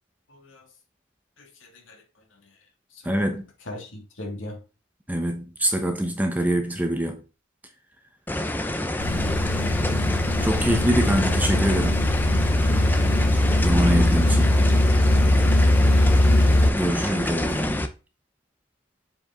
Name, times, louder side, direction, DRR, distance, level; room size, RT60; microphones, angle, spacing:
voice 1, 0.3-0.7 1.4-2.0 2.9-3.3 3.7-4.6, left 1 dB, 70° left, 2.4 m, -40 dB
voice 2, 3.0-3.4 5.1-7.2 10.4-12.0 13.3-14.6 16.7-17.8, right 1 dB, 10° right, 1.0 m, -24 dB
sound 1, 8.3-17.9, left 1 dB, 10° left, 0.5 m, -27 dB
sound 2, 9.0-16.7, left 1 dB, 90° left, 0.8 m, -20 dB
7.5 x 5.0 x 3.8 m
head